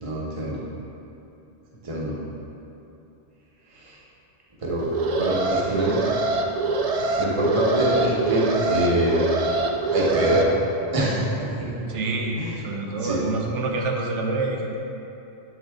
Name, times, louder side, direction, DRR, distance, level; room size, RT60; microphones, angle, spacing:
voice 1, 0.0-0.6 1.8-2.1 3.7-3.9 4.6-4.9 5.2-6.0 7.2-9.2 9.9-10.4 10.9-11.7 12.4-12.5 13.0-13.2, right 1 dB, 30° right, -5 dB, 1.0 m, -24 dB
Alarm, 4.8-10.4, right 3 dB, 70° right, 0.3 m, -24 dB
voice 2, 11.9-14.8, right 3 dB, 85° right, 1 dB, 1.0 m, -27 dB
8.0 x 3.8 x 3.5 m, 2.9 s
omnidirectional pair, 1.2 m